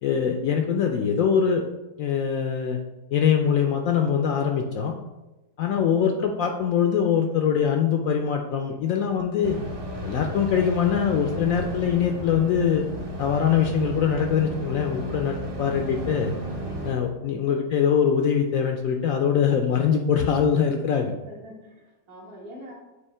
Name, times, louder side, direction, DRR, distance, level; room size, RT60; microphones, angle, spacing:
voice 1, 0.0-1.6 2.0-2.8 3.1-4.9 5.6-9.6 10.0-12.8 13.2-16.3 16.8-21.1, left 7 dB, 70° left, 3 dB, 0.8 m, -23 dB
voice 2, 5.9-6.4 17.5-18.0 21.3-22.7, equal, 65° right, -3 dB, 2.0 m, -44 dB
sound 1, 9.4-16.9, equal, 25° right, 0.5 m, -33 dB
8.2 x 2.8 x 4.3 m, 1.0 s
omnidirectional pair, 1.8 m